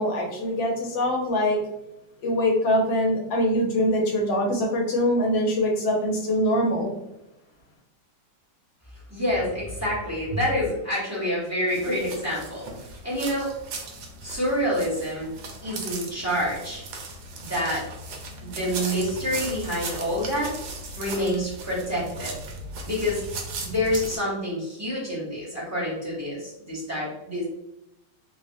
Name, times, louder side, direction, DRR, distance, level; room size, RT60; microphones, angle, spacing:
voice 1, 0.0-1.6 2.2-6.9, left 1 dB, 85° left, -2 dB, 1.5 m, -23 dB
voice 2, 9.1-12.7 13.0-13.5 14.2-15.3 15.6-16.8 17.4-17.9 18.4-20.5 21.0-22.3 22.8-23.2 23.6-27.4, equal, 15° right, -8 dB, 0.5 m, -27 dB
sound 1, 11.7-24.2, right 3 dB, 75° right, 1.2 m, -37 dB
3.3 x 2.1 x 2.5 m, 0.86 s
omnidirectional pair, 2.0 m